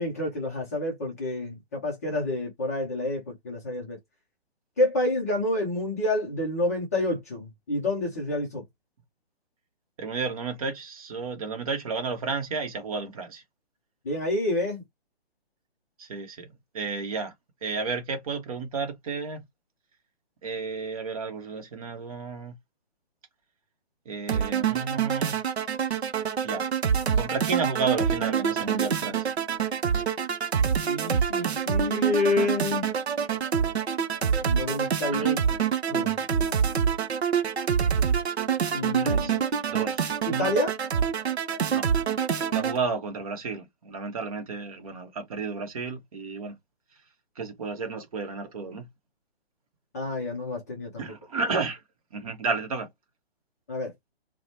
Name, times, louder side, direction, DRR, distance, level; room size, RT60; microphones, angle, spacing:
voice 1, 0.0-4.0 4.8-8.6 14.0-14.8 30.8-32.9 34.4-35.4 35.9-36.2 38.7-39.4 40.3-40.7 49.9-51.0 53.7-53.9, left 2 dB, 15° left, 0.4 m, -28 dB
voice 2, 10.0-13.4 16.0-16.5 16.7-17.3 17.6-19.4 20.4-22.5 24.1-25.4 26.4-26.7 27.1-29.3 35.1-35.4 39.0-39.4 39.7-40.5 41.7-41.9 42.5-46.6 47.4-48.9 51.0-51.8 52.1-52.9, right 4 dB, 35° right, 0.8 m, -32 dB
sound 1, 24.3-42.8, right 7 dB, 85° right, 0.5 m, -26 dB
3.0 x 2.0 x 2.7 m
figure-of-eight pair, 135°, 31 cm